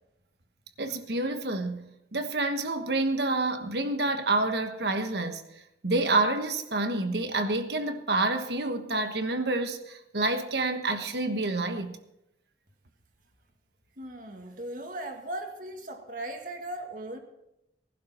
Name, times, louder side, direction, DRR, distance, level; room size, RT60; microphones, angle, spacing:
voice 1, 0.8-5.4 5.8-12.0, right 2 dB, 65° right, 7 dB, 1.3 m, -28 dB
voice 2, 14.0-17.2, right 1 dB, 50° right, 3 dB, 2.0 m, -38 dB
19.0 x 11.5 x 4.4 m, 0.86 s
head